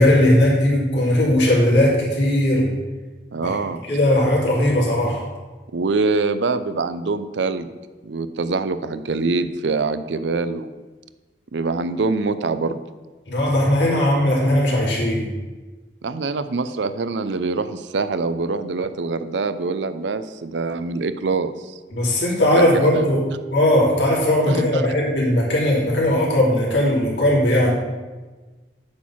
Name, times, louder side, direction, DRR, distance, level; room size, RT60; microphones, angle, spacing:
voice 1, 0.0-2.7 3.4-3.6 3.9-5.2 13.3-15.2 21.9-23.2 23.5-27.7, left 1 dB, 80° left, -4 dB, 3.0 m, -18 dB
voice 2, 3.3-3.8 5.7-7.7 8.0-10.7 11.5-12.8 16.0-21.8 22.5-23.2 24.4-24.8, right 3 dB, 85° right, 12 dB, 0.5 m, -24 dB
8.6 x 4.6 x 7.2 m, 1.3 s
head